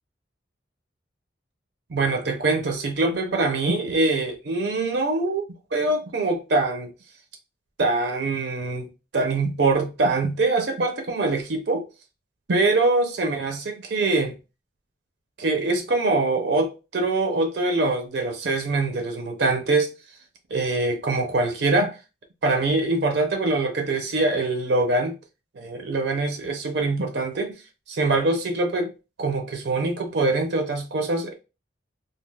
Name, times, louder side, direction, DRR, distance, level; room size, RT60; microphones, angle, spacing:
voice 1, 1.9-5.4 5.7-6.9 7.8-8.9 9.1-11.8 12.5-14.3 15.4-19.9 20.5-22.0 22.4-25.1 25.5-27.6 27.9-28.9 29.2-31.3, right 2 dB, 60° right, 0.5 m, -23 dB
3.3 x 2.3 x 2.2 m
head